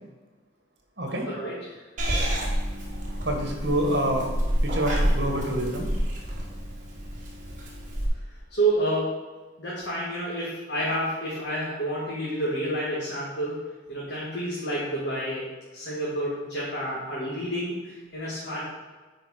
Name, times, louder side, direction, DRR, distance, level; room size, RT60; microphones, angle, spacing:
voice 1, 1.0-1.3 3.3-4.3 4.6-5.9, right 1 dB, 60° right, 2 dB, 1.7 m, -27 dB
Purr / Meow, 2.0-8.1, equal, 45° right, 1.9 m, -28 dB
voice 2, 8.5-9.2 9.6-13.6 13.9-15.5 15.7-18.7, right 1 dB, 65° left, -7 dB, 2.1 m, -29 dB
9.5 x 5.0 x 4.9 m, 1.3 s
head